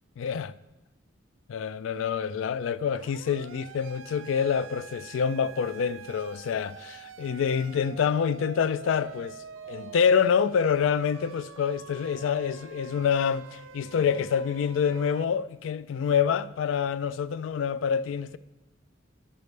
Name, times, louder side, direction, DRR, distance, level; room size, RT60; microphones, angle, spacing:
voice 1, 0.2-0.5 1.5-9.4 9.7-18.4, left 7 dB, 80° left, 0.3 m, -27 dB
Siren, 2.9-15.2, right 7 dB, 80° right, 0.3 m, -46 dB
sound 1, 9.6-11.1 12.2-13.7, right 2 dB, 40° right, 1.9 m, -59 dB
12.0 x 6.6 x 3.3 m
head